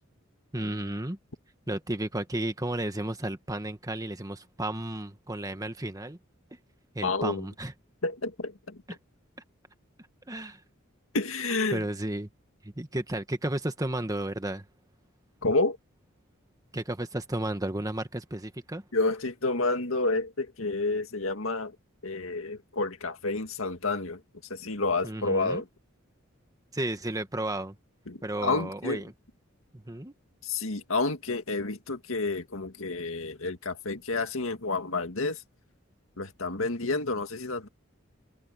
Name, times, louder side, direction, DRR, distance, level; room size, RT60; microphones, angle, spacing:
voice 1, 0.5-1.2 1.7-6.2 6.9-7.7 8.9-9.0 10.3-10.6 11.7-12.3 12.6-14.6 16.7-18.8 25.0-25.6 26.7-27.7 28.2-29.1 29.7-30.1, right 1 dB, 15° right, 1.5 m, -33 dB
voice 2, 7.0-7.5 8.0-8.8 11.1-11.9 15.4-15.8 18.9-21.8 22.0-24.2 24.5-25.7 28.1-29.0 30.4-35.4 36.2-37.7, left 3 dB, 80° left, 2.0 m, -29 dB
head